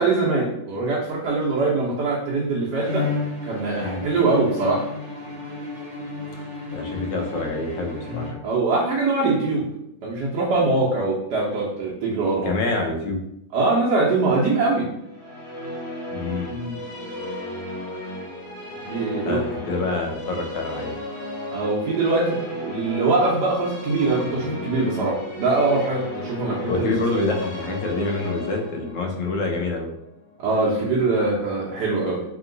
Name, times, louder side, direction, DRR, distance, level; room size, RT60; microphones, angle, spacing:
voice 1, 0.0-3.1 3.4-4.9 8.0-8.2 8.4-9.7 10.0-12.5 13.5-14.9 16.5-16.8 18.9-19.4 21.5-27.2 30.4-32.2, right 3 dB, 65° right, -6 dB, 1.3 m, -23 dB
Bowed string instrument, 2.8-8.8, left 4 dB, 35° right, 1.2 m, -32 dB
voice 2, 6.7-8.4 12.4-13.2 16.1-16.6 19.2-20.9 26.7-29.9, left 3 dB, 75° left, 1 dB, 1.4 m, -27 dB
Musical instrument, 15.0-30.4, left 1 dB, 55° left, 1.4 m, -35 dB
3.6 x 2.9 x 3.8 m, 0.81 s
omnidirectional pair, 2.0 m